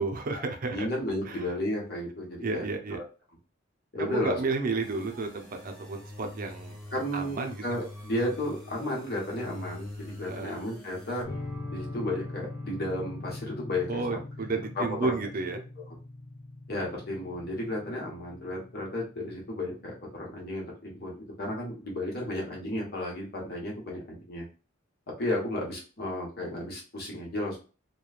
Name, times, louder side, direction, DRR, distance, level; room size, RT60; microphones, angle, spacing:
voice 1, 0.0-0.9 1.2-1.4 2.4-3.0 4.0-6.8 7.1-7.6 10.3-10.6 13.9-15.6, right 3 dB, 45° right, 5 dB, 0.5 m, -32 dB
voice 2, 0.7-2.6 2.9-3.0 3.9-4.4 6.9-11.3 11.7-14.2 14.7-15.1 16.7-24.4 25.2-27.6, left 1 dB, 55° left, -2 dB, 1.1 m, -33 dB
sound 1, 4.8-11.2, left 1 dB, ahead, 1.0 m, -45 dB
sound 2, 11.2-20.2, left 2 dB, 20° left, 0.6 m, -42 dB
3.0 x 2.2 x 2.3 m, 0.35 s
head